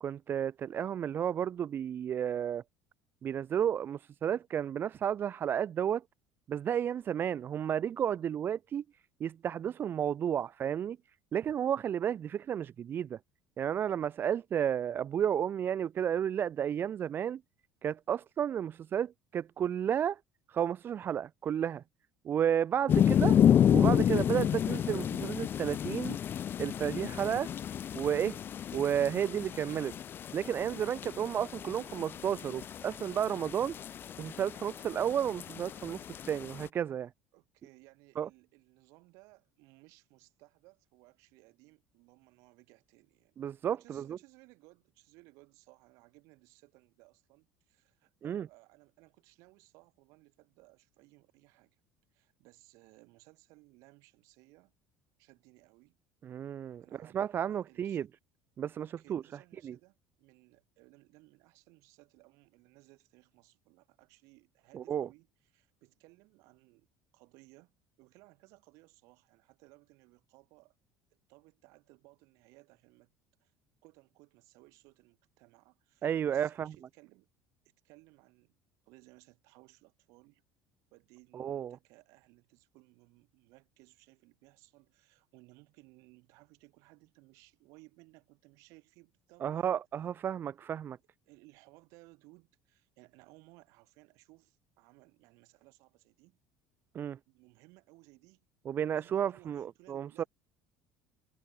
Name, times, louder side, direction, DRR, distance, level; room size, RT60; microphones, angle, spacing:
voice 1, 0.0-2.6 3.2-6.0 6.5-8.8 9.2-11.0 11.3-13.2 13.6-17.4 17.8-20.2 20.5-21.8 22.2-23.3 23.7-26.2 26.6-27.5 27.9-28.4 28.7-29.9 30.3-33.8 34.2-37.1 38.2-38.3 43.4-44.2 48.2-48.5 56.2-56.8 57.1-58.1 58.6-59.2 59.6-59.8 64.7-65.1 76.0-76.7 81.3-81.8 89.4-91.0 96.9-97.2 98.7-100.2, right 9 dB, 40° right, 0.6 m, -32 dB
sound 1, 22.9-36.7, left 9 dB, 40° left, 0.5 m, -30 dB
voice 2, 22.9-23.3 31.0-31.4 37.3-43.4 43.6-51.8 52.1-54.7 55.2-56.0 56.8-58.0 58.8-66.9 67.1-70.7 71.3-73.1 73.4-73.5 73.8-77.3 77.8-78.5 78.8-80.4 80.9-89.7 91.3-96.4 97.3-98.5 98.9-100.3, right 24 dB, 60° right, 6.4 m, -61 dB
figure-of-eight pair, 60°, 6 cm